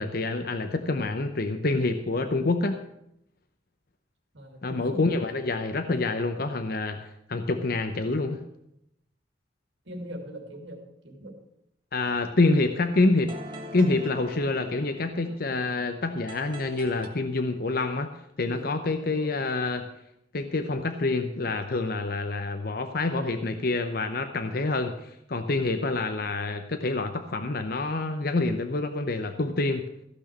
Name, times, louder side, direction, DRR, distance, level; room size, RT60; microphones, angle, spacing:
voice 1, 0.0-2.8 4.6-8.4 11.9-13.4 13.7-18.1 18.4-19.9 20.3-29.9, left 3 dB, 50° left, 7 dB, 0.8 m, -27 dB
voice 2, 4.3-5.4 9.8-11.4 14.4-14.8 18.5-19.4, right 1 dB, 70° right, 2 dB, 2.7 m, -42 dB
sound 1, 12.0-17.1, equal, 25° right, 1.4 m, -44 dB
15.0 x 6.3 x 7.4 m, 0.79 s
head